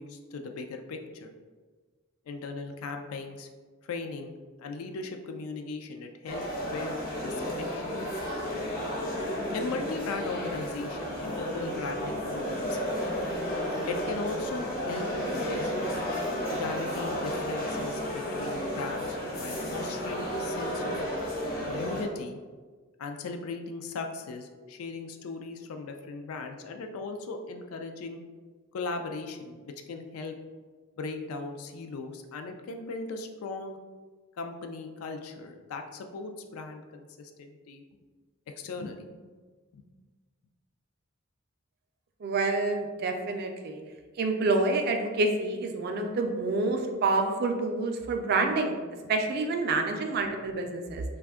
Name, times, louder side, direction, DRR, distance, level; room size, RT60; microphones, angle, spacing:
voice 1, 0.0-1.3 2.3-3.5 3.8-7.9 9.5-12.8 13.9-15.7 16.5-20.9 21.6-22.4 23.0-28.2 28.7-30.3 31.0-33.8 34.4-37.8 38.6-39.3 39.7-39.9, left 3 dB, 85° left, 5 dB, 0.3 m, -38 dB
sound 1, 6.3-22.0, equal, 45° left, 0.7 m, -32 dB
voice 2, 42.2-43.8 44.2-48.8 49.1-51.0, right 3 dB, 50° right, 4 dB, 0.3 m, -28 dB
2.5 x 2.3 x 3.5 m, 1.4 s
head